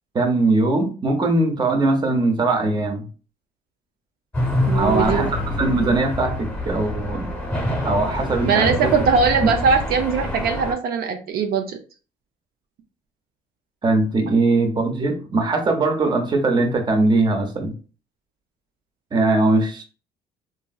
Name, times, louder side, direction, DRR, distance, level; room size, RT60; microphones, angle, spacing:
voice 1, 0.1-3.1 4.7-7.3 7.8-8.9 13.8-17.7 19.1-19.8, right 2 dB, 25° right, 0.7 m, -20 dB
sound 1, 4.3-10.7, left 1 dB, 10° left, 1.0 m, -26 dB
voice 2, 4.7-5.3 8.5-11.8, right 5 dB, 65° right, 0.5 m, -20 dB
2.9 x 2.6 x 2.3 m
cardioid pair, 110°, 17 cm